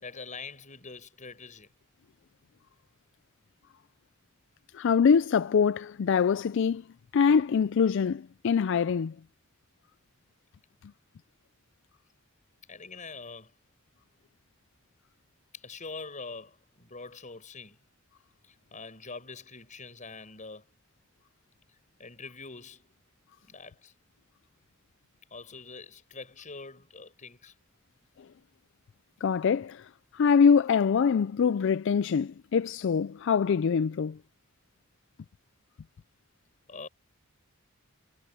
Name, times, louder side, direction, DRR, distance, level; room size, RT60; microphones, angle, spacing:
voice 1, 0.0-1.7 12.7-13.5 15.5-17.8 18.4-20.7 22.0-23.0 23.4-23.9 25.3-27.5 36.7-36.9, left 4 dB, 40° left, 6.6 m, -44 dB
voice 2, 4.7-6.8 7.1-9.1 29.2-29.9 30.1-34.2, left 6 dB, 65° left, 0.4 m, -24 dB
head